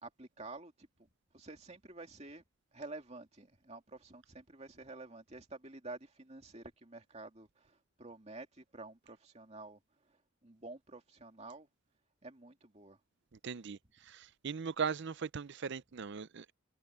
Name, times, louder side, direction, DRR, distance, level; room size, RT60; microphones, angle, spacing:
voice 1, 0.0-0.9 1.3-2.4 2.7-9.8 10.1-11.7 12.2-13.0, right 2 dB, 30° right, 2.6 m, -50 dB
voice 2, 13.4-13.8 14.1-16.5, right 6 dB, 55° right, 0.5 m, -38 dB
head